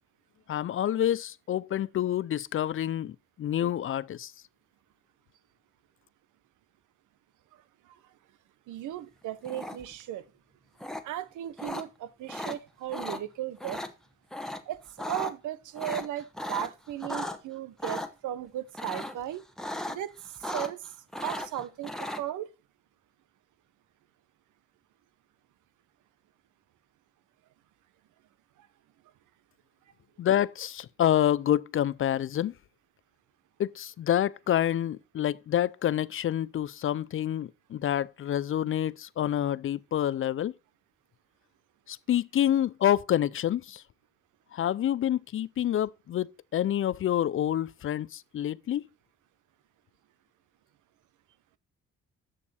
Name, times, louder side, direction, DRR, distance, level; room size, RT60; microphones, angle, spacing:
voice 1, 0.5-4.3 30.2-32.5 33.6-40.5 41.9-43.8 44.5-48.8, left 11 dB, 45° left, 0.4 m, -28 dB
voice 2, 8.7-10.3 11.0-13.8 14.7-19.4 19.9-20.8 21.2-22.5, right 12 dB, 80° right, 0.9 m, -36 dB
sound 1, 9.4-10.0 10.8-11.0 11.6-11.8 12.3-12.6 12.9-13.2 13.6-13.9 14.3-14.6 14.9-15.3 15.7-17.4 17.8-18.1 18.7-19.2 19.6-20.0 20.2-20.9 21.1-22.2, left 1 dB, ahead, 1.0 m, -36 dB
9.8 x 6.5 x 4.2 m
cardioid pair, 90°, 30 cm